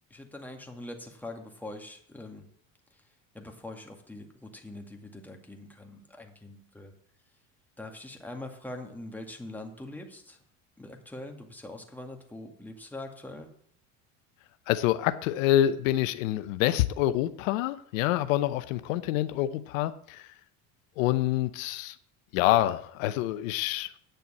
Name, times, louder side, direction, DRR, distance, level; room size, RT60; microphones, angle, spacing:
voice 1, 0.1-2.4 3.3-6.9 7.8-10.4 10.8-13.5, left 2 dB, 5° left, 2 dB, 2.1 m, -43 dB
voice 2, 14.7-20.3 21.0-22.0 22.3-23.9, left 13 dB, 90° left, 12 dB, 0.8 m, -26 dB
9.3 x 6.9 x 7.4 m, 0.63 s
supercardioid pair, 100°, 39 cm